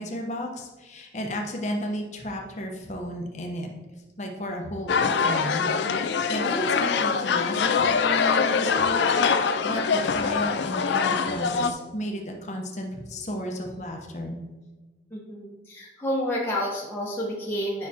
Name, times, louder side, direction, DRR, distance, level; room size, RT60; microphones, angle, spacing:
voice 1, 0.0-3.7 4.2-14.4, equal, 40° left, 1 dB, 0.9 m, -33 dB
sound 1, 4.9-11.7, left 5 dB, 75° left, 0.4 m, -24 dB
voice 2, 15.1-17.9, equal, 15° left, -5 dB, 1.0 m, -29 dB
8.5 x 5.8 x 2.8 m, 1.2 s
head